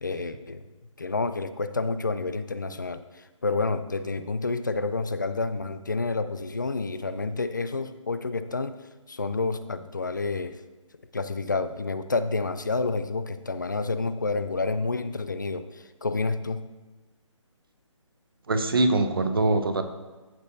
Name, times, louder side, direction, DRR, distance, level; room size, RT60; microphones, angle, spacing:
voice 1, 0.0-0.6 1.0-8.8 9.1-10.6 11.1-16.7, left 3 dB, 40° left, 12 dB, 0.4 m, -29 dB
voice 2, 18.5-19.8, right 2 dB, 45° right, 8 dB, 0.8 m, -23 dB
13.5 x 6.3 x 2.7 m, 1.2 s
hypercardioid pair, 175°, 17 cm